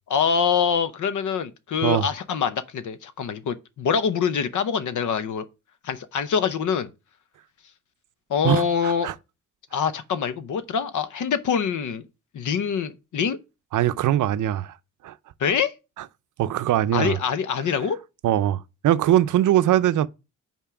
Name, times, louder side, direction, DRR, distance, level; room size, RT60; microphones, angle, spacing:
voice 1, 0.1-5.5 5.8-6.9 8.3-9.1 9.7-12.0 12.3-13.4 15.4-15.7 16.9-18.0, left 7 dB, 75° left, 0.8 m, -25 dB
voice 2, 8.4-9.1 13.7-14.7 15.0-15.1 16.4-17.2 18.2-20.1, right 12 dB, 85° right, 0.5 m, -21 dB
5.7 x 4.5 x 4.9 m
wide cardioid pair, 135°, 30 cm